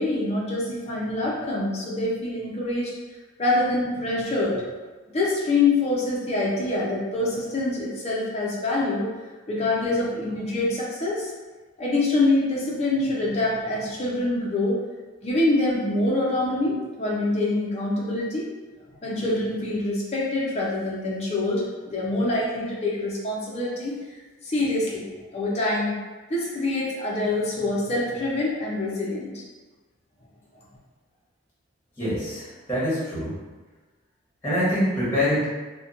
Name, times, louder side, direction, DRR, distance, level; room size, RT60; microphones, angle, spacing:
voice 1, 0.0-2.9 3.4-4.6 5.1-9.1 9.5-11.3 11.8-14.8 15.2-18.5 19.0-24.0 24.4-25.1 25.3-26.0 26.3-29.4, left 2 dB, 30° left, -5 dB, 0.5 m, -25 dB
voice 2, 32.0-33.3 34.4-35.4, equal, 10° left, -10 dB, 1.0 m, -25 dB
2.8 x 2.1 x 2.4 m, 1.3 s
head